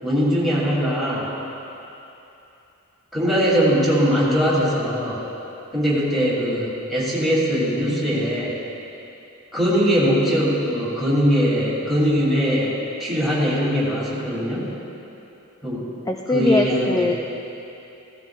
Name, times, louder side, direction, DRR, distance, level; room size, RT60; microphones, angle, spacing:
voice 1, 0.0-1.3 3.1-5.2 5.7-8.6 9.5-12.7 13.0-14.7 15.6-15.8 16.3-17.1, equal, ahead, -8 dB, 2.9 m, -21 dB
voice 2, 16.1-17.2, left 2 dB, 15° left, 2 dB, 0.4 m, -21 dB
16.0 x 15.5 x 2.5 m, 2.9 s
head